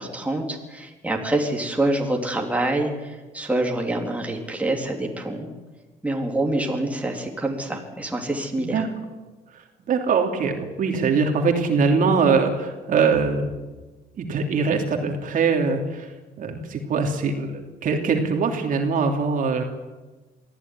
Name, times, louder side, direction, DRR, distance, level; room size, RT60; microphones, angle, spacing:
voice 1, 0.0-5.5 6.0-8.8, right 1 dB, 10° right, 1 dB, 3.9 m, -26 dB
voice 2, 9.9-13.5 14.2-16.1 16.4-19.6, right 5 dB, 50° right, 3 dB, 3.2 m, -22 dB
22.5 x 15.0 x 9.9 m, 1.2 s
cardioid pair, 110°, 17 cm